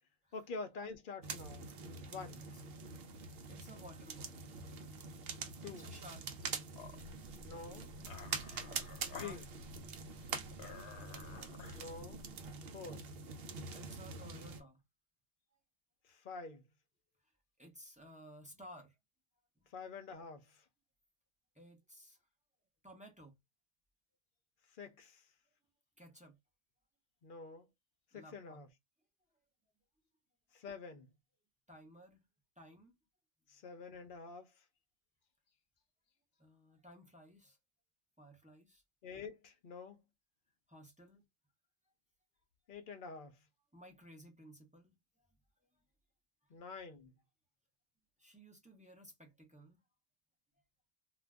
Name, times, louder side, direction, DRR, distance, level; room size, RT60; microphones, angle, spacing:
voice 1, 0.3-1.7 2.1-2.4 5.6-5.9 7.4-7.9 9.2-9.4 11.7-12.2 12.7-13.0 16.0-16.6 19.7-20.6 24.8-25.2 27.2-27.7 28.1-28.7 30.5-31.1 33.5-34.5 39.0-40.0 42.7-43.4 46.5-47.1, left 4 dB, 55° left, 0.7 m, -47 dB
sound 1, 1.2-14.6, right 5 dB, 65° right, 0.8 m, -45 dB
voice 2, 3.5-4.5 5.7-6.4 8.5-9.4 13.7-14.8 15.5-15.6 17.2-17.3 17.6-19.0 19.6-19.7 21.5-22.3 22.8-23.4 26.0-26.4 28.1-28.6 31.7-32.3 32.6-33.0 36.4-37.6 38.2-38.8 40.7-41.3 43.7-45.3 45.7-45.8 48.2-49.8, equal, 10° right, 0.6 m, -57 dB
sound 2, 6.7-12.5, left 4 dB, 75° left, 1.0 m, -53 dB
2.5 x 2.2 x 3.3 m
omnidirectional pair, 1.2 m